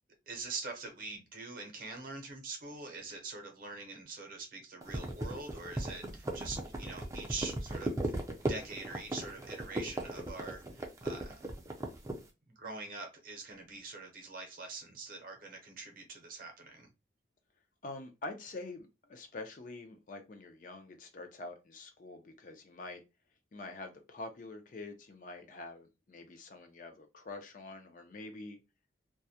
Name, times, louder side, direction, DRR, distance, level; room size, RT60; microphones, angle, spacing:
voice 1, 0.3-8.1 8.5-11.5 12.6-16.9, right 3 dB, 45° right, 0.7 m, -44 dB
sound 1, 4.8-12.2, right 1 dB, 15° right, 0.4 m, -37 dB
voice 2, 17.8-23.0 23.5-28.6, left 2 dB, 45° left, 0.4 m, -46 dB
2.2 x 2.0 x 2.7 m
head